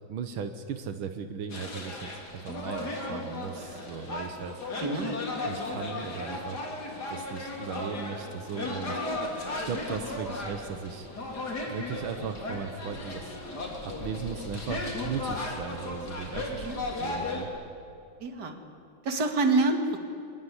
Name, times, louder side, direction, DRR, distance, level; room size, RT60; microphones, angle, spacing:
voice 1, 0.1-4.6 5.4-6.6 7.1-9.0 9.6-11.1 11.7-13.6 13.8-16.7 17.0-17.5, right 6 dB, 85° right, 8 dB, 2.0 m, -37 dB
sound 1, 1.5-17.4, left 2 dB, 50° left, 3.9 m, -35 dB
voice 2, 4.8-5.2 16.6-16.9 18.2-18.6 19.0-20.0, right 3 dB, 55° right, 6 dB, 2.6 m, -27 dB
24.5 x 21.0 x 9.8 m, 2.7 s
omnidirectional pair, 2.2 m